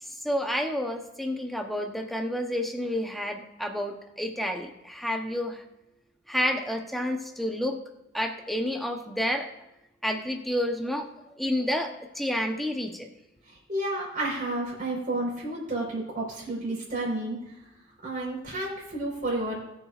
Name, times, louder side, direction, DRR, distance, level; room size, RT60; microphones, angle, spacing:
voice 1, 0.0-5.6 6.3-7.8 8.1-9.5 10.0-11.1 11.4-13.1, left 1 dB, ahead, 3 dB, 0.8 m, -30 dB
voice 2, 13.5-17.4 18.0-19.6, right 2 dB, 45° right, -3 dB, 4.3 m, -31 dB
21.0 x 7.0 x 2.5 m, 0.94 s
head